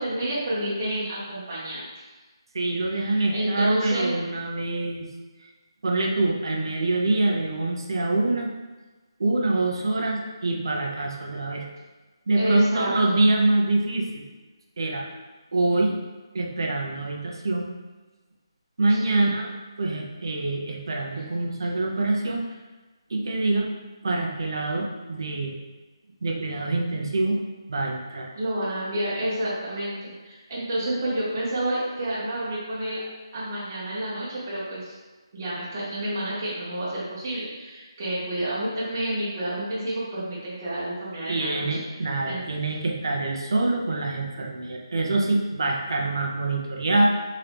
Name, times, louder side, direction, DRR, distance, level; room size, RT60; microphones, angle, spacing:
voice 1, 0.0-2.0 2.8-4.2 12.4-12.9 18.9-19.3 21.1-21.2 28.3-33.0 33.3-35.0 35.3-41.6 42.3-42.5, right 1 dB, 30° right, -9 dB, 1.0 m, -29 dB
voice 2, 2.5-5.1 5.4-5.5 5.8-8.5 9.2-11.7 12.3-14.2 14.8-15.1 15.5-15.9 16.3-17.7 18.8-19.5 19.8-22.4 23.1-23.7 24.0-25.6 26.2-27.4 27.7-28.3 41.3-47.1, right 2 dB, 55° right, 0 dB, 0.6 m, -25 dB
3.7 x 2.9 x 3.4 m, 1.2 s
hypercardioid pair, 170°, 3 cm